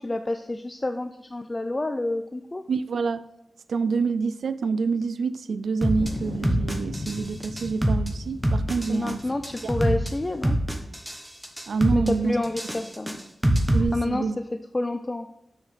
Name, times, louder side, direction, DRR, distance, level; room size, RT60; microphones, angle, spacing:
voice 1, 0.0-2.6 8.9-10.6 11.9-13.2 13.6-14.5 14.7-15.3, left 2 dB, 20° left, 0.4 m, -29 dB
voice 2, 2.7-3.3 3.7-9.2 9.6-9.7 11.7-12.4 13.7-14.4, right 4 dB, 85° right, 0.3 m, -27 dB
sound 1, 5.8-6.1 6.4-7.2 7.4-8.1 8.4-9.1 9.4-10.1 10.4-11.2 11.4-12.1 12.4-13.8, right 1 dB, 5° right, 1.1 m, -24 dB
sound 2, 6.0-11.2 11.7-12.5, left 2 dB, 55° left, 1.0 m, -38 dB
6.4 x 6.3 x 5.1 m
wide cardioid pair, 135°, 0 cm